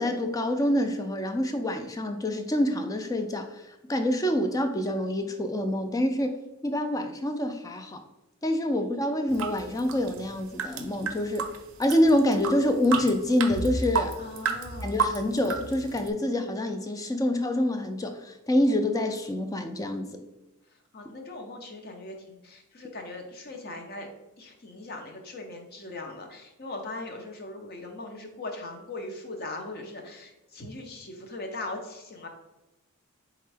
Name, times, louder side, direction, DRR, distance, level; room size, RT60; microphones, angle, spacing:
voice 1, 0.0-3.6 3.9-6.4 6.6-8.0 8.4-11.4 11.8-14.1 14.8-20.2, left 1 dB, 15° left, 6 dB, 0.3 m, -26 dB
voice 2, 8.7-9.1 14.2-15.0 20.9-24.1 24.4-32.3, left 2 dB, 45° left, 3 dB, 0.7 m, -40 dB
sound 1, 9.3-16.1, right 5 dB, 60° right, 0.5 m, -32 dB
4.3 x 3.7 x 3.4 m, 1.0 s
head